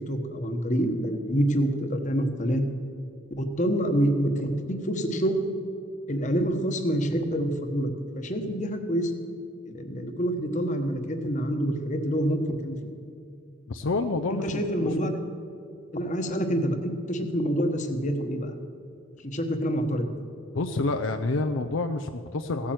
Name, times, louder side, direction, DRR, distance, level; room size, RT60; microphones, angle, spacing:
voice 1, 0.1-2.6 3.4-5.4 6.1-7.9 8.1-9.1 9.7-12.8 14.3-15.2 15.9-18.5 19.2-20.1, equal, 35° left, 6 dB, 1.1 m, -27 dB
voice 2, 13.7-15.1 20.5-22.7, left 3 dB, 70° left, 6 dB, 0.6 m, -28 dB
16.0 x 8.5 x 7.8 m, 2.5 s
head